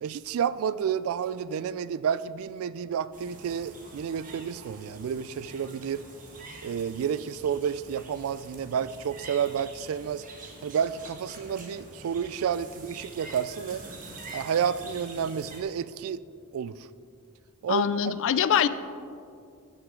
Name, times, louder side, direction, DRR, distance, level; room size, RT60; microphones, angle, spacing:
voice 1, 0.0-6.0 6.6-10.2 10.6-13.8 14.3-16.2 16.5-16.9 17.6-18.1, right 7 dB, 65° right, 16 dB, 0.3 m, -30 dB
sound 1, 3.1-15.6, right 2 dB, 40° right, 1.3 m, -46 dB
voice 2, 17.7-18.7, left 9 dB, 60° left, 14 dB, 0.4 m, -23 dB
14.0 x 6.3 x 3.7 m, 2.4 s
head